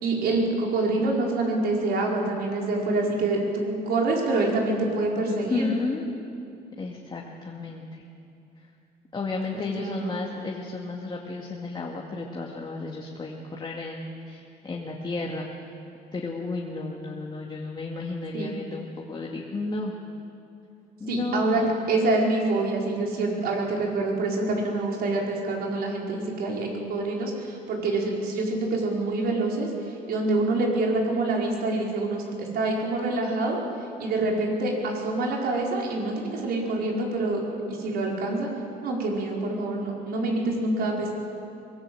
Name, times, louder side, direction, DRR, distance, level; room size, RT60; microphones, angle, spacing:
voice 1, 0.0-5.7 9.5-10.2 18.3-18.5 21.1-29.7 30.1-33.6 34.0-38.5 38.8-41.1, right 2 dB, 65° right, -1 dB, 5.1 m, -26 dB
voice 2, 5.3-6.1 6.8-8.0 9.1-15.7 16.1-20.0 21.0-21.7, left 3 dB, 25° left, -2 dB, 2.3 m, -33 dB
23.5 x 18.5 x 8.0 m, 2.7 s
cardioid pair, 110°, 17 cm